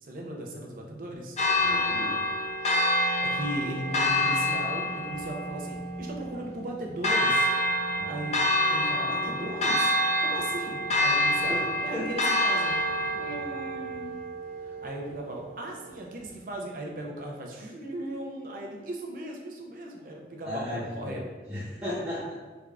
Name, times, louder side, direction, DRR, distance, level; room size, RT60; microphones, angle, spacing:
voice 1, 0.0-1.4 3.2-7.5 7.9-8.4 8.7-9.9 10.2-12.8 13.2-14.3 14.6-21.2, right 1 dB, 50° right, 0 dB, 0.5 m, -37 dB
Church bell, 1.4-15.4, left 1 dB, 40° left, 0.4 m, -27 dB
voice 2, 1.6-2.2 7.9-8.2 11.5-11.6 11.9-12.2 20.4-21.2 21.5-22.3, left 1 dB, 15° right, -10 dB, 0.9 m, -35 dB
3.5 x 2.4 x 3.3 m, 1.4 s
head